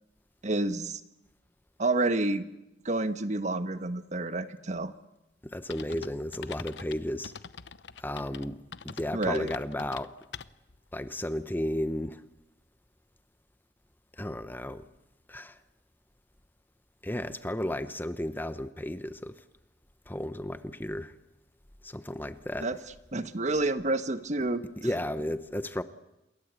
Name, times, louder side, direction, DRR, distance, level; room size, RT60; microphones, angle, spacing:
voice 1, 0.4-1.0 1.8-2.4 2.8-4.9 9.1-9.5 22.6-22.8 23.1-24.6, right 2 dB, 45° right, 1.3 m, -29 dB
voice 2, 5.4-7.3 8.0-8.6 8.8-10.1 10.9-12.2 14.2-14.9 15.3-15.6 17.0-19.4 20.1-21.1 21.8-22.7 24.8-25.8, left 1 dB, 10° left, 0.9 m, -33 dB
sound 1, 5.7-10.8, left 6 dB, 90° left, 0.9 m, -44 dB
28.0 x 22.0 x 8.2 m
head